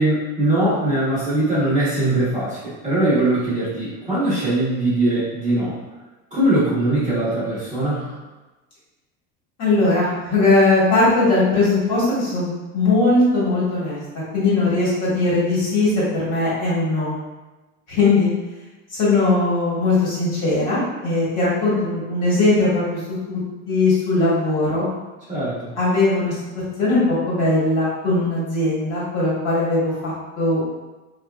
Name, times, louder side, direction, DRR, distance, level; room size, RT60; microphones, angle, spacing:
voice 1, 0.0-5.8 6.3-8.1 25.3-25.7, right 1 dB, 20° right, -10 dB, 1.0 m, -21 dB
voice 2, 9.6-14.0 14.3-17.1 17.9-18.3 19.0-23.0 23.3-23.4 23.7-24.9 25.8-26.3 26.8-30.7, left 2 dB, 45° left, -8 dB, 1.3 m, -19 dB
2.7 x 2.4 x 2.3 m, 1.1 s
supercardioid pair, 145°, 36 cm